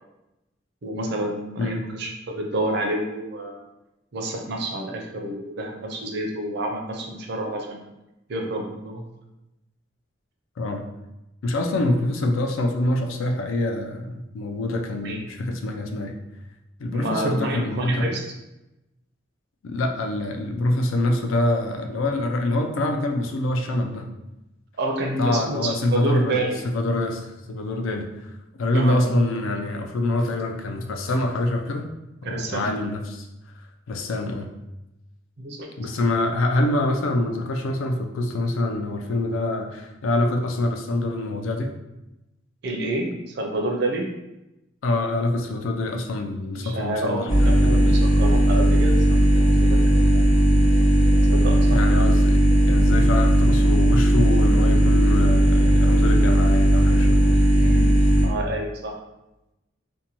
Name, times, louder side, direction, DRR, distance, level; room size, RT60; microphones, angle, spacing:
voice 1, 0.8-3.7 4.1-7.9 8.3-9.0 15.0-15.2 16.9-18.2 24.8-26.6 28.7-29.1 32.2-32.7 35.4-35.7 42.6-44.0 46.5-49.2 49.5-49.8 50.1-50.2 51.3-51.8 57.6-59.0, right 1 dB, 55° right, 2 dB, 0.4 m, -29 dB
voice 2, 11.4-16.2 16.8-18.1 19.6-24.1 25.2-26.4 26.6-28.3 28.6-31.9 32.2-33.3 33.9-34.5 35.8-41.7 44.8-47.9 51.7-57.4, left 1 dB, 90° left, 4 dB, 0.4 m, -25 dB
sound 1, 47.3-58.2, right 1 dB, 55° left, 1.0 m, -17 dB
2.6 x 2.1 x 2.8 m, 0.94 s
head